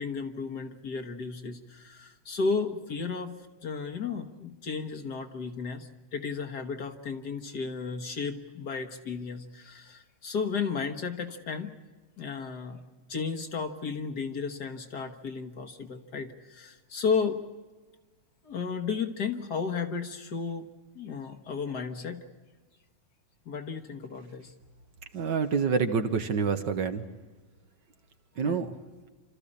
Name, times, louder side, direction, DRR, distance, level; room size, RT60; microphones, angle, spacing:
voice 1, 0.0-3.3 3.6-11.7 12.2-12.8 13.1-17.4 18.4-20.7 21.0-22.2 23.5-24.5 28.4-28.7, left 5 dB, 50° left, 4 dB, 1.8 m, -33 dB
voice 2, 25.1-27.0 28.4-28.8, right 5 dB, 60° right, 8 dB, 1.6 m, -27 dB
28.0 x 14.0 x 10.0 m, 1.3 s
omnidirectional pair, 2.4 m